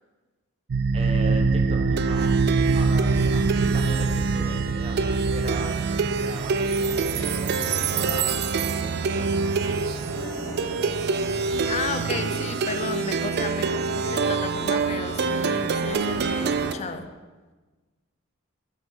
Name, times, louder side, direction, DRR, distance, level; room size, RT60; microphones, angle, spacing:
Plucked string instrument, 0.7-16.7, right 4 dB, 50° right, 0.4 m, -24 dB
voice 1, 0.9-2.3 2.7-9.5, right 1 dB, 30° right, 2 dB, 1.1 m, -38 dB
sound 1, 6.8-17.0, left 1 dB, 60° left, 0.9 m, -40 dB
voice 2, 11.7-17.1, left 4 dB, 35° left, 10 dB, 0.4 m, -33 dB
12.0 x 4.9 x 3.8 m, 1.3 s
head